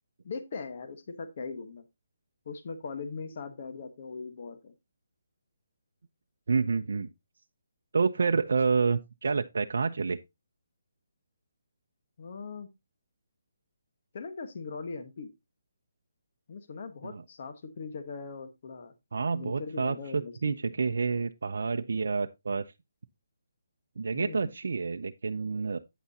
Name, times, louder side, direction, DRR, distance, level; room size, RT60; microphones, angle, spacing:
voice 1, 0.2-1.8 2.5-4.7 12.2-12.7 14.1-15.3 16.5-18.9 19.3-20.5 24.1-24.5, left 4 dB, 45° left, 1.3 m, -40 dB
voice 2, 6.5-7.1 7.9-10.2 17.0-17.2 19.1-22.7 24.0-25.8, right 4 dB, 65° right, 0.6 m, -28 dB
9.2 x 8.1 x 2.8 m
hypercardioid pair, 170°, 0 cm